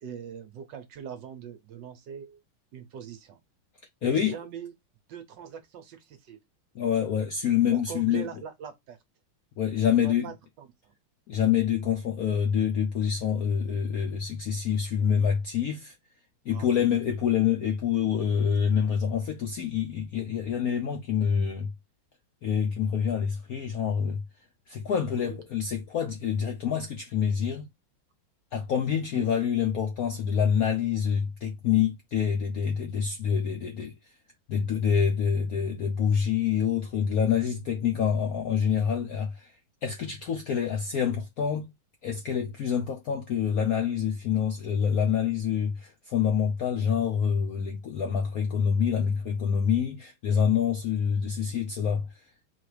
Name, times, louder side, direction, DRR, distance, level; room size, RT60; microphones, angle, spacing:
voice 1, 0.0-2.4 2.7-3.4 4.0-4.7 5.1-6.4 7.7-9.0 10.0-10.9 16.5-16.8 25.1-25.4 29.1-29.3, right 8 dB, 65° right, 1.3 m, -42 dB
voice 2, 4.0-4.4 6.7-8.3 9.6-10.3 11.3-15.9 16.5-21.7 22.4-24.2 24.7-27.7 28.5-33.9 34.5-39.5 39.8-41.7 42.0-52.1, left 8 dB, 70° left, 0.8 m, -26 dB
4.2 x 2.4 x 4.8 m
omnidirectional pair, 2.3 m